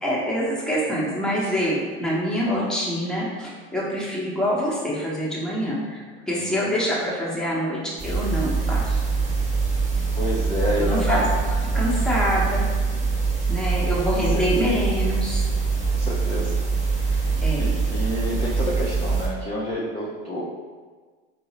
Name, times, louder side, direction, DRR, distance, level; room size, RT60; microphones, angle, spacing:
voice 1, 0.0-6.0 6.3-9.0 10.8-11.2 11.7-12.7 13.5-15.5 17.4-17.7, equal, ahead, -6 dB, 0.9 m, -25 dB
voice 2, 6.3-6.7 10.1-11.3 11.7-12.0 14.3-14.5 15.9-16.5 17.0-17.2 17.6-20.5, equal, 20° left, -5 dB, 0.5 m, -29 dB
sound 1, 8.0-19.3, right 4 dB, 25° right, 1.1 m, -24 dB
4.4 x 2.0 x 2.8 m, 1.4 s
supercardioid pair, 105°, 29 cm